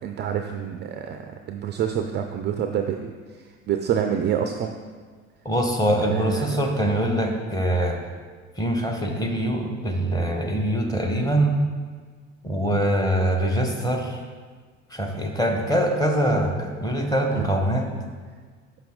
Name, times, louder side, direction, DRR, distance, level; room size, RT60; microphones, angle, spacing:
voice 1, 0.0-4.7 6.1-6.6 17.3-17.5, right 8 dB, 30° right, 6 dB, 0.4 m, -27 dB
voice 2, 5.4-8.0 8.6-11.6 12.4-14.2 14.9-17.9, right 1 dB, 10° left, 1 dB, 1.0 m, -23 dB
5.8 x 5.7 x 3.7 m, 1.5 s
hypercardioid pair, 65°, 37 cm